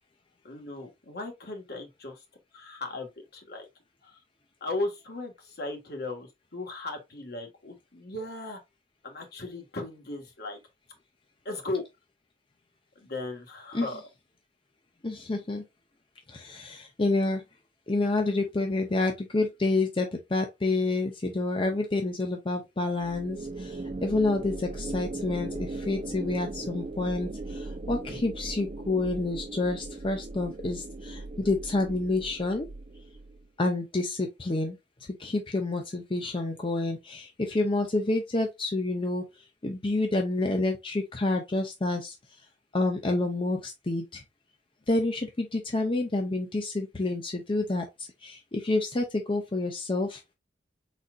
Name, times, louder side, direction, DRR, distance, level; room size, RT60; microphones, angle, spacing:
voice 1, 0.4-2.2 2.5-3.7 4.0-4.2 4.6-8.6 9.0-10.6 11.4-11.8 12.9-14.0, left 2 dB, 60° left, 1.5 m, -36 dB
voice 2, 15.0-15.6 16.3-17.4 17.9-32.7 33.6-34.8 35.2-39.2 39.6-42.2 42.7-44.2 44.9-50.2, left 2 dB, 30° left, 0.6 m, -28 dB
sound 1, 23.0-33.5, right 2 dB, 40° right, 0.5 m, -38 dB
4.7 x 4.1 x 2.4 m
head